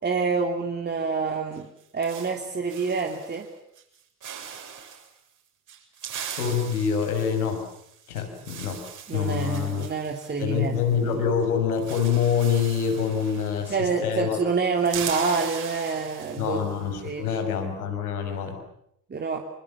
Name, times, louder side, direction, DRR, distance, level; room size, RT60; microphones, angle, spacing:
voice 1, 0.0-1.7 1.9-3.5 9.1-11.2 13.7-16.6 17.0-17.3 19.1-19.4, right 4 dB, 20° right, 3 dB, 3.2 m, -27 dB
sound 1, 1.5-3.5 3.8-4.0 4.2-5.1 5.7-11.1 11.4-11.5 11.7-14.1 14.4-16.8, right 8 dB, 40° right, 7.4 m, -40 dB
voice 2, 6.4-7.6 8.1-8.8 9.1-9.9 10.4-14.4 16.4-18.6, left 7 dB, 70° left, 6 dB, 5.9 m, -26 dB
28.5 x 25.5 x 7.3 m, 0.75 s
figure-of-eight pair, 65°, 46 cm